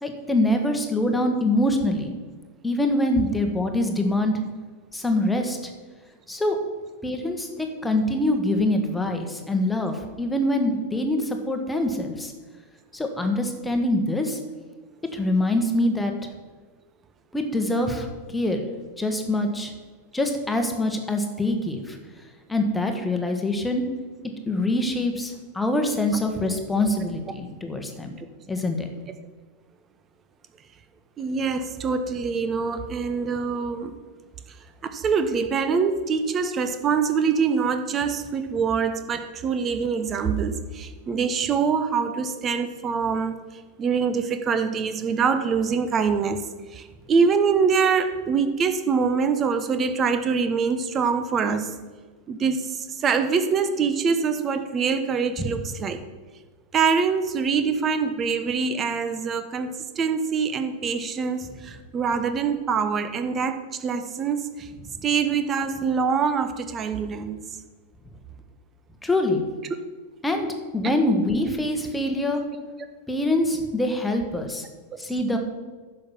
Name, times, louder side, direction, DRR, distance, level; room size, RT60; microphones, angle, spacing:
voice 1, 0.0-2.1 2.6-4.3 4.9-5.7 6.3-6.6 7.0-12.3 12.9-14.4 15.1-16.3 17.3-18.6 19.0-19.7 20.1-22.0 22.5-23.8 24.5-28.2 28.5-28.9 55.4-55.5 69.0-69.4 70.2-70.5 70.7-72.4 73.1-74.6 75.0-75.4, left 1 dB, 5° left, 4 dB, 1.5 m, -24 dB
voice 2, 31.2-33.9 34.5-34.6 34.8-51.7 52.3-56.0 56.7-64.7 65.0-67.4, right 5 dB, 25° right, 9 dB, 1.0 m, -24 dB
10.0 x 6.7 x 6.0 m, 1.4 s
figure-of-eight pair, 90°, 0 cm